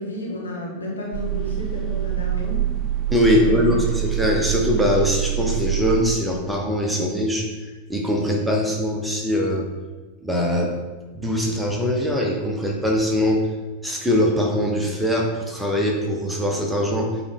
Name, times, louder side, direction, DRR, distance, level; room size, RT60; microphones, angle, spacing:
voice 1, 0.0-2.6 3.3-3.6, left 1 dB, 75° left, -4 dB, 1.9 m, -31 dB
sound 1, 1.1-6.4, right 13 dB, 30° right, 0.5 m, -25 dB
voice 2, 3.1-7.5 7.9-9.7 10.2-10.7 11.1-13.5 13.8-17.2, left 1 dB, 5° right, -1 dB, 1.1 m, -22 dB
8.4 x 4.1 x 3.8 m, 1.3 s
figure-of-eight pair, 90°, 0 cm